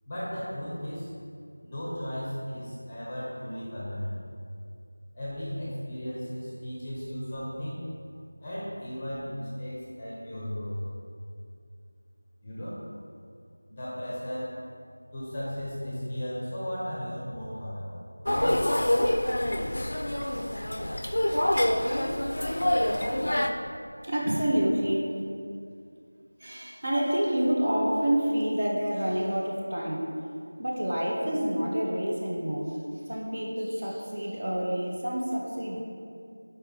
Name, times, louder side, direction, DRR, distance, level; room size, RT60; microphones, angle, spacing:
voice 1, 0.1-1.1 1.6-4.1 5.1-7.8 8.4-10.8 12.4-12.8 13.7-14.6 15.1-18.0, equal, 15° left, -7 dB, 0.7 m, -35 dB
sound 1, 18.3-23.5, left 1 dB, 65° left, 0.4 m, -26 dB
voice 2, 24.0-25.1 26.4-30.1 30.6-32.8 33.1-35.8, equal, 35° right, -4 dB, 0.7 m, -28 dB
4.5 x 4.5 x 5.1 m, 2.4 s
figure-of-eight pair, 180°, 0 cm